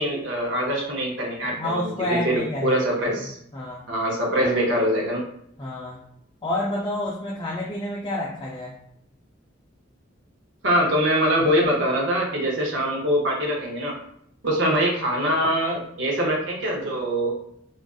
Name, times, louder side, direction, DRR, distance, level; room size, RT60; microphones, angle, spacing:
voice 1, 0.0-3.4 3.9-5.2 10.6-13.9 14.4-17.4, equal, 65° right, -1 dB, 0.7 m, -23 dB
voice 2, 1.5-2.8 3.5-3.8 5.6-6.0 6.4-8.8, left 1 dB, 25° left, -4 dB, 0.3 m, -29 dB
2.4 x 2.3 x 2.3 m, 0.70 s
head